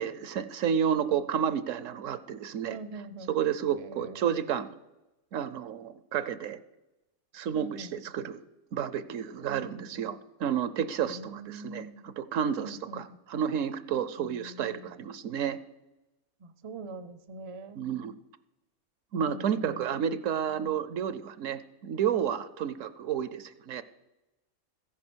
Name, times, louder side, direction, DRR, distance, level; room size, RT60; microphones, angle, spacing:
voice 1, 0.0-2.8 3.3-4.7 5.3-6.6 7.3-8.4 8.7-15.6 17.8-18.1 19.1-23.8, right 8 dB, 70° right, 14 dB, 1.0 m, -31 dB
voice 2, 2.7-3.4 3.7-4.4 7.5-7.9 9.4-10.0 11.1-12.1 12.6-13.2 14.2-15.0 16.4-17.9 19.2-19.9, right 2 dB, 35° right, 12 dB, 0.5 m, -44 dB
14.5 x 10.5 x 6.2 m, 1.0 s
omnidirectional pair, 1.5 m